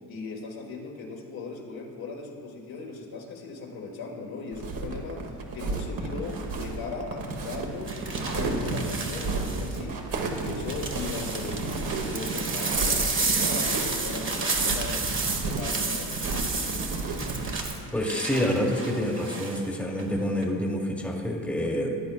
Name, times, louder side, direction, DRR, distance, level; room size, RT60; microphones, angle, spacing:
voice 1, 0.1-16.5, left 4 dB, 60° left, 0 dB, 1.7 m, -39 dB
sound 1, 4.5-17.7, right 3 dB, 55° right, 1.4 m, -32 dB
sound 2, 6.2-6.5 7.9-9.8 10.3-19.6 20.0-20.4, right 4 dB, 30° right, 1.2 m, -31 dB
voice 2, 17.9-22.0, equal, 5° left, 1 dB, 1.4 m, -27 dB
14.0 x 9.7 x 2.3 m, 2.3 s
supercardioid pair, 75°, 41 cm